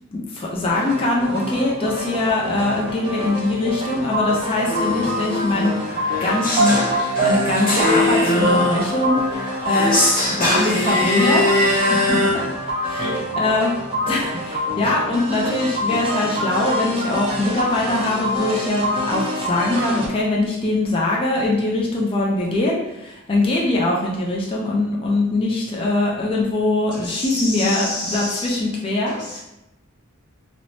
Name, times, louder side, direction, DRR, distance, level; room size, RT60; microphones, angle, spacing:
voice 1, 0.1-6.8 7.2-10.0 10.3-12.4 12.8-13.7 14.1-29.4, left 2 dB, 25° left, -3 dB, 0.3 m, -22 dB
sound 1, 0.7-20.1, equal, 25° right, 0.5 m, -25 dB
sound 2, 4.6-12.3, left 1 dB, 40° left, 0.9 m, -22 dB
voice 2, 26.9-28.6 29.1-29.4, left 1 dB, 90° left, -5 dB, 1.0 m, -29 dB
3.1 x 2.0 x 2.6 m, 0.93 s
head